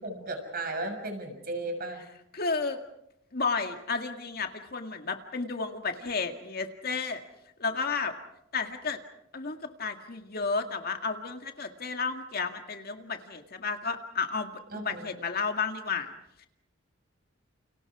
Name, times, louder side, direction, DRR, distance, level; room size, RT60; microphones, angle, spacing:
voice 1, 0.0-2.0 14.7-15.1, right 2 dB, 50° right, 5 dB, 6.5 m, -35 dB
voice 2, 2.3-2.8 3.3-7.2 7.6-8.1 8.5-9.0 9.3-16.1 16.4-16.5, left 4 dB, 50° left, 6 dB, 2.0 m, -32 dB
30.0 x 29.5 x 4.9 m, 0.79 s
head